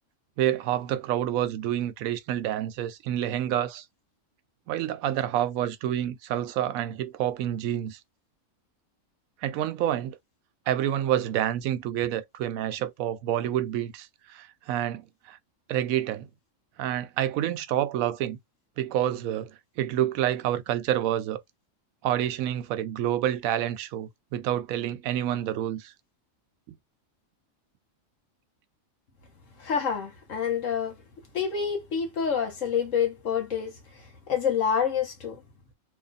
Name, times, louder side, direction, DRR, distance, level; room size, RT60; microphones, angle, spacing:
voice 1, 0.4-3.8 4.7-8.0 9.4-10.2 10.7-15.4 15.7-16.3 16.8-18.4 18.8-21.4 22.0-25.9, right 11 dB, 85° right, 1.0 m, -28 dB
voice 2, 29.6-30.9 31.3-33.7 34.3-35.4, left 7 dB, 65° left, 1.5 m, -27 dB
3.1 x 2.3 x 4.0 m
omnidirectional pair, 1.4 m